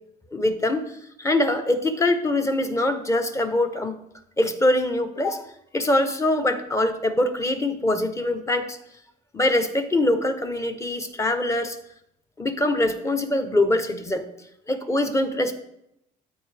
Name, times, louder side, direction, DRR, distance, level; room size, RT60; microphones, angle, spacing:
voice 1, 0.3-4.0 4.4-5.4 5.7-8.8 9.3-11.8 12.4-14.2 14.7-15.5, left 1 dB, 15° left, 9 dB, 0.9 m, -23 dB
13.5 x 4.5 x 3.4 m, 0.79 s
cardioid pair, 110°, 17 cm